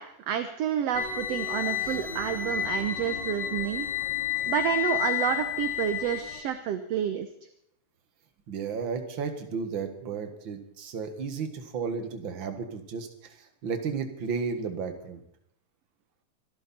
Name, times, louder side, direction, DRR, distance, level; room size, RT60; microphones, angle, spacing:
voice 1, 0.0-3.9 4.5-7.3, right 9 dB, 65° right, 9 dB, 1.7 m, -29 dB
sound 1, 0.9-6.4, left 10 dB, 40° left, 2.4 m, -31 dB
voice 2, 8.5-15.2, right 5 dB, 45° right, 7 dB, 2.1 m, -33 dB
25.5 x 12.5 x 4.3 m, 0.71 s
omnidirectional pair, 3.5 m